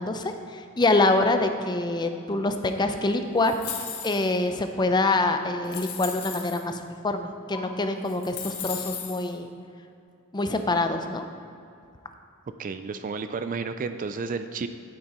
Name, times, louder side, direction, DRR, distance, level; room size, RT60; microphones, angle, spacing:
voice 1, 0.0-3.5 4.0-9.5 10.3-11.2, left 2 dB, 20° left, 7 dB, 0.5 m, -25 dB
sound 1, 3.4-4.4 5.1-5.2 5.6-6.6 7.5-7.6 8.0-9.3, left 7 dB, 75° left, 1.4 m, -36 dB
voice 2, 12.6-14.7, right 4 dB, 35° right, 10 dB, 0.3 m, -31 dB
8.8 x 8.7 x 4.3 m, 2.5 s
head